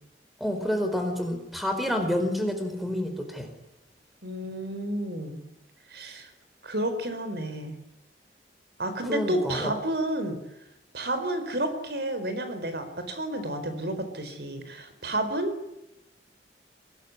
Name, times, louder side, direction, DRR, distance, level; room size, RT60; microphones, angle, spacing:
voice 1, 0.4-3.5 9.1-9.7, left 1 dB, ahead, 6 dB, 4.5 m, -28 dB
voice 2, 4.2-5.4 5.9-6.3 6.6-7.8 8.8-10.4 10.9-15.7, right 1 dB, 65° right, 9 dB, 4.6 m, -31 dB
24.0 x 20.5 x 9.6 m, 0.90 s
head